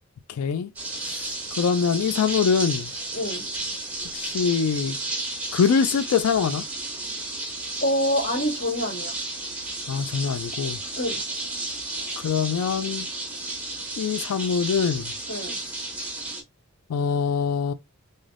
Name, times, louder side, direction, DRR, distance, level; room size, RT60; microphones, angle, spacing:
voice 1, 0.3-0.7 1.6-2.9 4.1-5.0 5.5-6.6 9.9-10.8 12.2-13.1 14.0-15.1 16.9-17.7, left 6 dB, 90° left, 0.4 m, -23 dB
sound 1, 0.8-16.4, right 2 dB, 5° right, 0.8 m, -33 dB
voice 2, 3.1-3.5 7.8-9.2 11.0-11.2 15.3-15.6, left 1 dB, 55° left, 1.7 m, -26 dB
3.3 x 2.7 x 2.4 m
head